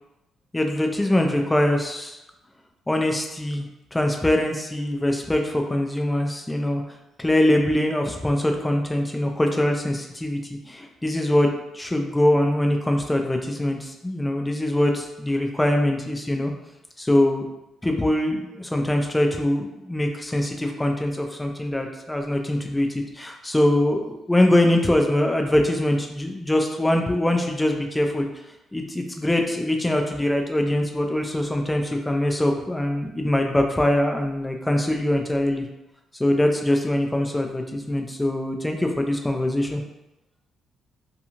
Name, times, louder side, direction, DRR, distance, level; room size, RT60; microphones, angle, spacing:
voice 1, 0.5-2.2 2.9-3.7 3.9-6.8 7.2-10.4 10.7-11.5 11.7-16.5 17.0-17.4 17.8-28.3 28.7-35.6 36.2-39.8, left 1 dB, 10° left, 3 dB, 0.4 m, -23 dB
2.9 x 2.3 x 2.6 m, 0.93 s
cardioid pair, 90°, 0 cm